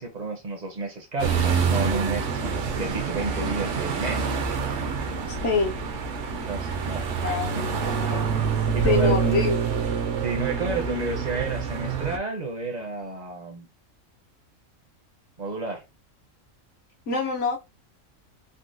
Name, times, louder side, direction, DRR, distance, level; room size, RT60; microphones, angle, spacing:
voice 1, 0.0-4.3 6.3-9.5 10.2-13.7 15.4-15.8, right 3 dB, 45° right, 0.6 m, -31 dB
sound 1, 1.2-12.2, right 6 dB, 70° right, 0.8 m, -26 dB
voice 2, 5.3-5.8 7.2-8.3 8.8-9.5 17.1-17.6, left 4 dB, 65° left, 0.9 m, -26 dB
3.7 x 2.1 x 2.5 m
omnidirectional pair, 1.4 m